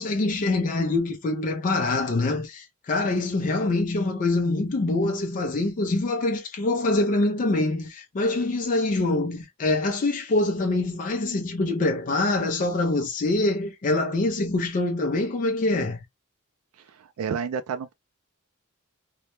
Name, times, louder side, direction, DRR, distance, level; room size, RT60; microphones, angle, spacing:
voice 1, 0.0-16.0, left 2 dB, 35° left, 0.4 m, -25 dB
voice 2, 16.9-17.9, right 6 dB, 70° right, 0.3 m, -30 dB
2.1 x 2.1 x 2.9 m
head